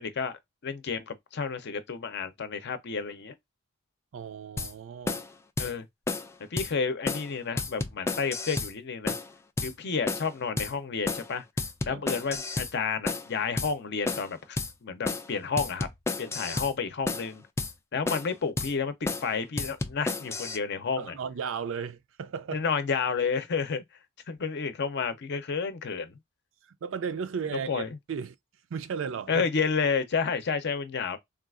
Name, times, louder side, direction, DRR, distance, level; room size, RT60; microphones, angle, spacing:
voice 1, 0.0-3.3 5.6-5.9 6.5-9.2 9.6-11.4 11.9-15.9 16.2-17.4 17.9-21.1 22.5-23.8 24.3-26.2 27.7-27.9 29.3-31.2, left 5 dB, 55° left, 0.6 m, -31 dB
voice 2, 4.1-5.3 11.9-12.0 21.0-22.7 26.6-28.3 28.7-29.5, right 6 dB, 70° right, 0.4 m, -35 dB
sound 1, 4.6-4.7 5.1-5.3 5.6-5.7 6.1-6.3 6.6-6.7 7.1-7.3 7.6-8.7 9.1-9.3 9.6-9.7 10.1-10.3 10.6-10.7 11.1-11.3 11.6-12.7 13.1-13.3 13.6-13.7 14.1-14.3 14.6-14.7 15.1-15.3 15.6-16.7 17.1-17.3 17.6-17.7 18.1-18.3 18.6-18.7 19.1-19.3 19.6-20.6, left 3 dB, 15° left, 0.3 m, -31 dB
3.7 x 2.4 x 2.4 m
head